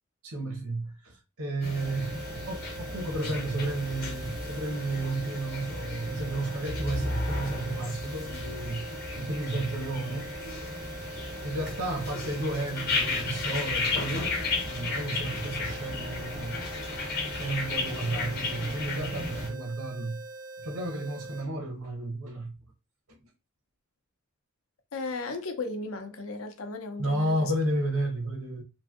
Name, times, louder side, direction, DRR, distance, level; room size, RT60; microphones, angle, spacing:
voice 1, 0.2-8.9 9.1-10.4 11.4-14.4 14.6-16.6 17.1-20.2 20.6-22.5 23.1-23.2 27.0-28.6, right 2 dB, 85° right, 0.9 m, -32 dB
sound 1, 1.6-19.5, left 3 dB, 45° left, 0.8 m, -34 dB
sound 2, 1.7-21.5, right 2 dB, 65° right, 0.4 m, -43 dB
voice 2, 24.9-27.5, left 3 dB, 75° left, 0.6 m, -35 dB
3.1 x 2.5 x 2.4 m
head